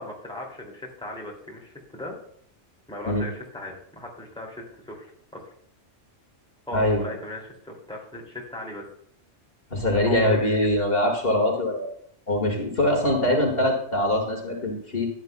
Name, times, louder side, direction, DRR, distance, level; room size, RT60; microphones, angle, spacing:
voice 1, 0.0-2.2 2.9-5.5 6.7-8.8 10.1-10.8, left 1 dB, 5° left, -2 dB, 2.4 m, -38 dB
voice 2, 6.7-7.0 9.7-11.9 12.3-15.1, left 1 dB, 55° left, 1 dB, 2.0 m, -23 dB
15.0 x 9.8 x 2.2 m, 0.63 s
omnidirectional pair, 1.2 m